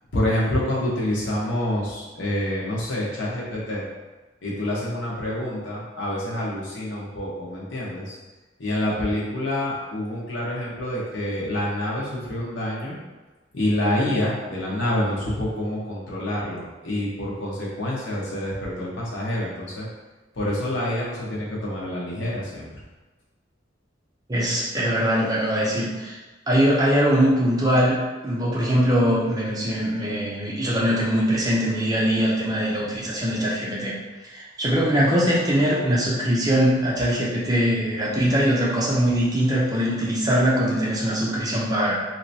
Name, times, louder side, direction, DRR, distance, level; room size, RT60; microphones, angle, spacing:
voice 1, 0.1-3.8 4.4-8.2 8.6-13.0 13.5-19.9 20.3-22.7, left 1 dB, 80° left, -5 dB, 1.0 m, -27 dB
voice 2, 24.3-26.2 26.5-33.9 34.2-42.0, equal, 20° right, -5 dB, 0.6 m, -22 dB
3.2 x 2.9 x 2.7 m, 1.2 s
head